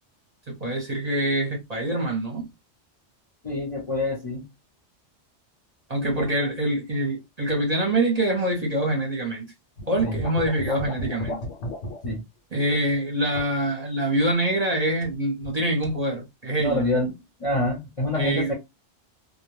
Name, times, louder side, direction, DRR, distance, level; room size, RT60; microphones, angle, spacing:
voice 1, 0.5-2.4 5.9-9.5 9.9-11.4 12.5-16.9 18.1-18.5, right 1 dB, 40° right, 0.7 m, -25 dB
voice 2, 3.4-4.5 6.0-6.5 10.0-10.2 12.0-12.2 16.6-17.1 17.4-18.5, left 1 dB, 35° left, 0.6 m, -27 dB
sound 1, 9.8-12.2 12.7-13.0 13.4-13.6 15.0-15.6 15.8-16.0, left 1 dB, 80° left, 0.9 m, -34 dB
2.2 x 2.1 x 3.0 m
omnidirectional pair, 1.2 m